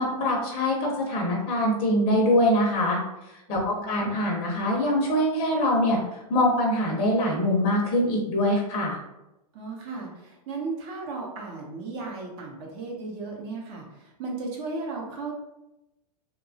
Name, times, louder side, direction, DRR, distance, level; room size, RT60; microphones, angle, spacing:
voice 1, 0.0-3.0 3.5-6.0 6.3-9.0, left 1 dB, 30° left, -1 dB, 0.6 m, -23 dB
voice 2, 3.5-3.9 9.5-15.3, right 3 dB, 45° right, -1 dB, 0.7 m, -35 dB
2.8 x 2.2 x 2.6 m, 0.93 s
hypercardioid pair, 145°, 20 cm